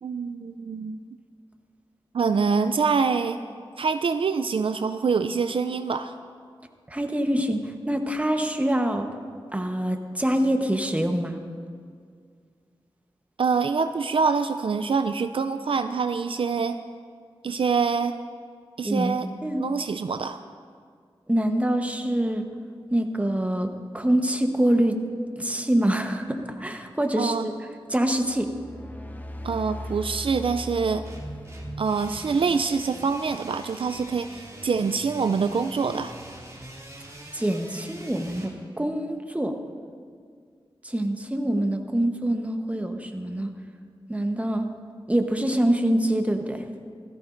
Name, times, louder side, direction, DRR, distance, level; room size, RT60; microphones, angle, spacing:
voice 1, 0.0-1.0 2.1-3.4 3.8-6.1 13.4-16.8 17.4-18.1 18.8-19.3 19.6-20.4 27.2-27.5 29.4-31.0 31.8-36.1, right 5 dB, 65° right, 9 dB, 0.4 m, -25 dB
voice 2, 6.9-9.1 9.5-11.4 18.8-19.1 19.4-19.7 21.3-22.4 22.9-25.0 25.4-27.5 27.9-28.5 37.3-39.5 40.8-43.5 44.1-44.7 45.1-46.6, right 1 dB, 15° right, 5 dB, 1.1 m, -25 dB
sound 1, 28.1-32.8, left 1 dB, 15° left, 0.9 m, -39 dB
sound 2, 31.0-38.5, right 1 dB, 30° right, 2.7 m, -43 dB
16.5 x 14.0 x 2.6 m, 2.1 s
cardioid pair, 55°, 10 cm